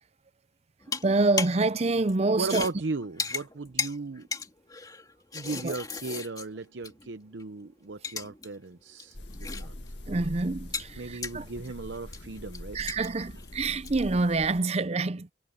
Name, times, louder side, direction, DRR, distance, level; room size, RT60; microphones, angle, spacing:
sound 1, 0.8-1.7 2.0-7.1 7.4-7.5 7.9-8.5 8.7-10.0 10.2-14.1, left 4 dB, 20° left, 2.4 m, -37 dB
voice 1, 1.0-2.7 5.6-5.7 10.1-11.4 12.7-15.3, right 3 dB, 35° right, 0.6 m, -26 dB
voice 2, 2.3-4.3 5.3-9.7 11.0-12.8, right 3 dB, 85° right, 0.8 m, -36 dB
sound 2, 9.1-14.6, left 1 dB, 75° left, 1.8 m, -43 dB
head